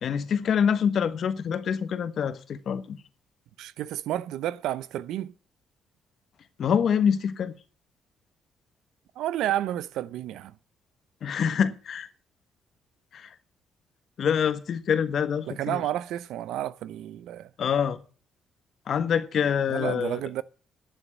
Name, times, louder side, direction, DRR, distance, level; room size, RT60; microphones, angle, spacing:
voice 1, 0.0-3.0 6.6-7.5 11.2-12.1 13.1-13.3 14.2-15.8 17.6-18.0 18.9-20.2, left 7 dB, 60° left, 1.3 m, -26 dB
voice 2, 3.6-5.3 9.2-10.6 15.5-17.5 19.7-20.4, right 12 dB, 85° right, 0.6 m, -31 dB
11.5 x 7.2 x 8.3 m
cardioid pair, 90°, 0 cm